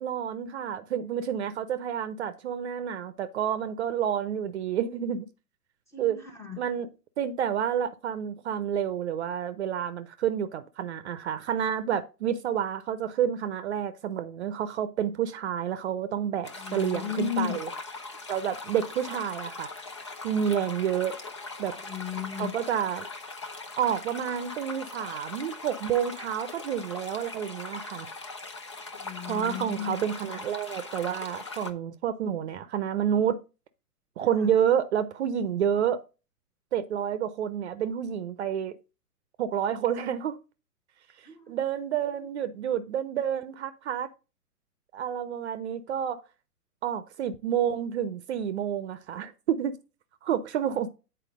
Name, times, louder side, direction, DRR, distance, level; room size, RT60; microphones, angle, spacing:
voice 1, 0.0-5.3 6.0-6.2 6.6-6.9 7.2-17.7 18.3-19.7 20.2-21.2 21.6-21.7 22.4-23.0 23.8-28.1 29.3-33.4 34.2-36.0 36.7-38.7 39.4-40.4 41.5-44.1 44.9-46.2 46.8-49.8 50.2-50.9, right 9 dB, 45° right, 0.7 m, -29 dB
voice 2, 5.9-6.6 16.6-17.6 21.8-22.5 28.9-30.0 34.2-34.5 41.2-41.6, left 10 dB, 5° left, 1.1 m, -35 dB
sound 1, 16.4-31.7, left 3 dB, 20° left, 0.4 m, -40 dB
8.1 x 4.4 x 5.0 m
hypercardioid pair, 125°, 47 cm